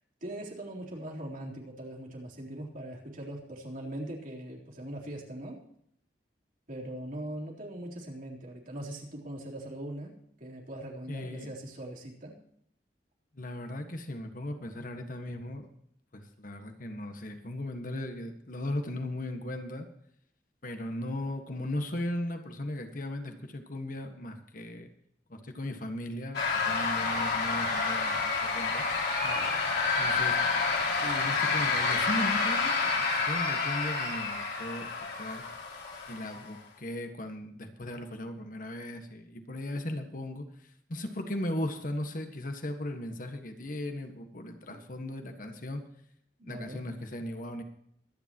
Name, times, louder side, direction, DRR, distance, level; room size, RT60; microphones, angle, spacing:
voice 1, 0.2-5.6 6.7-10.1 10.4-12.4 29.2-29.8 44.7-44.9 46.4-46.8, right 1 dB, 50° right, -2 dB, 3.7 m, -41 dB
voice 2, 11.1-11.5 13.4-15.7 16.1-19.9 20.6-24.9 25.3-28.9 30.0-30.4 31.0-34.9 35.2-35.4 36.1-45.8 46.4-47.6, left 1 dB, 50° left, 6 dB, 1.6 m, -37 dB
sound 1, 26.3-36.5, left 4 dB, 65° left, 3.8 m, -29 dB
23.5 x 10.0 x 3.0 m, 0.71 s
head